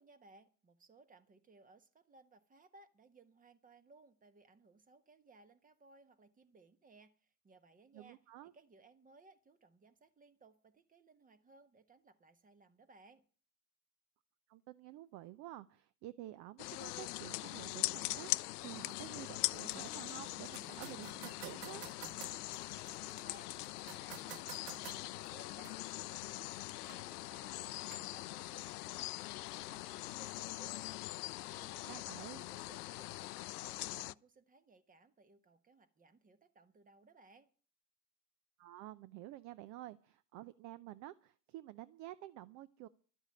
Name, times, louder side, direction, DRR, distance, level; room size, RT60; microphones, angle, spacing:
voice 1, 0.0-13.2 22.8-23.5 23.8-25.7 25.9-32.0 32.4-37.5, right 3 dB, 15° right, 12 dB, 1.4 m, -63 dB
voice 2, 7.9-8.5 14.5-21.8 31.8-32.5 38.6-42.9, right 15 dB, 40° right, 17 dB, 0.6 m, -50 dB
sound 1, 16.6-34.1, left 19 dB, 70° left, 0.6 m, -42 dB
sound 2, 18.8-28.8, right 12 dB, 80° right, 0.9 m, -55 dB
Squeak, 27.4-33.2, right 3 dB, 60° right, 6.7 m, -70 dB
12.0 x 8.0 x 9.6 m, 0.42 s
hypercardioid pair, 100°, 48 cm